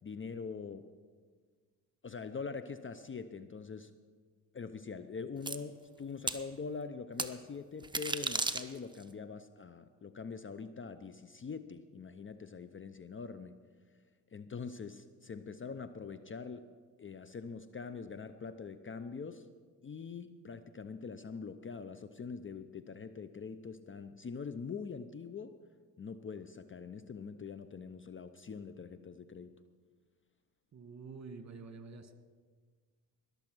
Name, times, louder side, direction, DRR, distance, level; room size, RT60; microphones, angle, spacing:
voice 1, 0.0-0.9 2.0-3.9 4.5-13.6 14.3-16.7 17.0-19.5 19.8-25.5 26.0-29.5, left 5 dB, 30° left, 12 dB, 0.7 m, -43 dB
sound 1, 5.5-5.6 6.3-6.4 7.2-7.3 7.8-9.0, right 3 dB, 10° right, 0.9 m, -34 dB
voice 2, 30.7-32.1, right 4 dB, 40° right, 8 dB, 1.7 m, -48 dB
20.0 x 6.9 x 6.2 m, 1.5 s
supercardioid pair, 60°, 43 cm